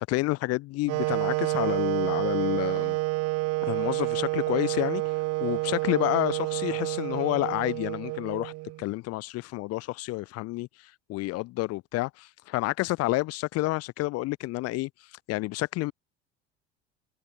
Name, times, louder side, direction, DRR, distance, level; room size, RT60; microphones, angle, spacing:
voice 1, 0.1-3.0 3.7-5.0 5.4-8.5 8.8-15.9, left 20 dB, 50° left, 1.3 m, -29 dB
Wind instrument woodwind instrument, 0.9-8.8, right 22 dB, 50° right, 1.2 m, -29 dB
figure-of-eight pair, 60°, 32 cm